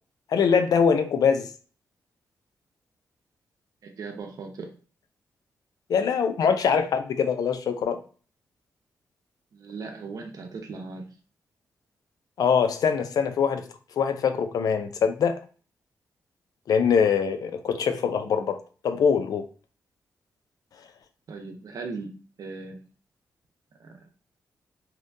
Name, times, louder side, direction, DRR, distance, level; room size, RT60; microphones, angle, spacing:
voice 1, 0.3-1.5 5.9-8.0 12.4-13.7 14.0-15.4 16.7-18.6 18.8-19.4, left 6 dB, 70° left, 0.4 m, -23 dB
voice 2, 3.8-4.7 9.5-11.1 21.3-22.1 22.4-22.8 23.8-24.1, right 4 dB, 70° right, 0.6 m, -38 dB
2.7 x 2.1 x 2.6 m
cardioid pair, 60°, 7 cm